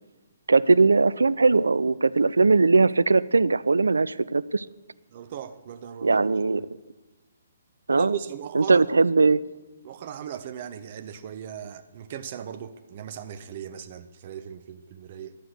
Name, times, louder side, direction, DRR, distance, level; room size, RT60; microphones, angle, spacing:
voice 1, 0.5-4.7 6.0-6.6 7.9-8.2 8.5-9.4, right 3 dB, 80° right, 0.3 m, -20 dB
voice 2, 5.1-6.2 7.9-8.9 9.8-15.4, right 9 dB, 40° right, 0.6 m, -38 dB
12.0 x 7.7 x 6.6 m
figure-of-eight pair, 135°, 0 cm